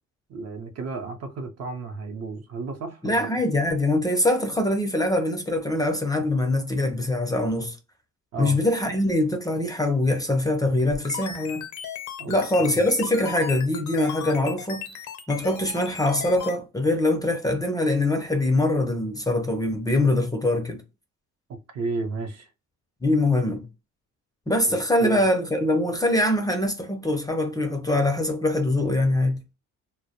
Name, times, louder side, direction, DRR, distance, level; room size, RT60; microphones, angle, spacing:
voice 1, 0.3-3.4 8.3-8.6 12.2-12.3 12.6-12.8 21.7-22.5 25.0-25.2, right 3 dB, 55° right, 0.6 m, -33 dB
voice 2, 3.0-7.8 8.4-11.7 12.3-14.9 15.3-20.8 23.0-23.7 24.5-29.4, left 1 dB, 10° left, 0.4 m, -23 dB
sound 1, 10.8-16.6, left 8 dB, 80° left, 0.6 m, -37 dB
2.2 x 2.0 x 2.8 m
cardioid pair, 90°, 30 cm